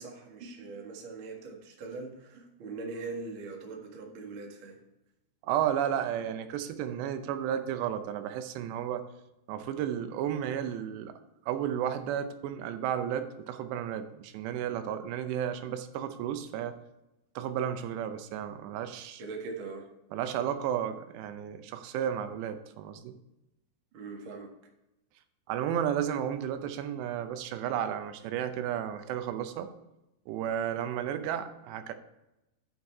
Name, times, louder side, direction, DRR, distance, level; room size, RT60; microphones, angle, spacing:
voice 1, 0.0-4.8 19.2-19.9 23.9-24.5, right 3 dB, 60° right, 0 dB, 1.3 m, -41 dB
voice 2, 5.4-9.0 9.5-11.1 11.4-16.8 17.4-19.2 20.1-23.1 25.5-29.7 30.3-31.9, right 9 dB, 80° right, 9 dB, 2.8 m, -33 dB
9.6 x 5.8 x 4.5 m, 0.92 s
omnidirectional pair, 5.1 m